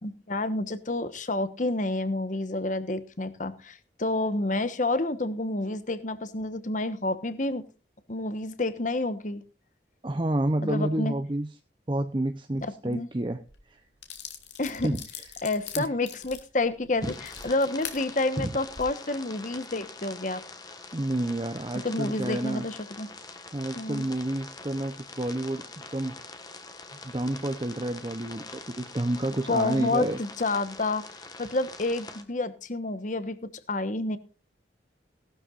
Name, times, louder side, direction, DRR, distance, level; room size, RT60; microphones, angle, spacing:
voice 1, 0.0-7.6 8.1-9.4 10.6-11.1 12.6-13.1 14.6-14.9 15.4-20.4 21.8-23.1 23.7-24.1 29.5-31.0 31.4-34.2, left 2 dB, 45° left, 12 dB, 1.2 m, -29 dB
voice 2, 10.0-11.5 11.9-13.8 14.8-15.0 15.8-15.9 17.0-17.1 18.4-18.6 20.9-22.7 23.5-26.2 26.9-30.2, right 1 dB, 25° right, 7 dB, 0.7 m, -29 dB
sound 1, 13.5-13.6 14.0-18.0 18.6-18.8, left 9 dB, 80° left, 2.7 m, -41 dB
sound 2, 17.0-32.2, left 3 dB, 20° left, 1.6 m, -44 dB
18.0 x 12.5 x 2.5 m, 0.32 s
head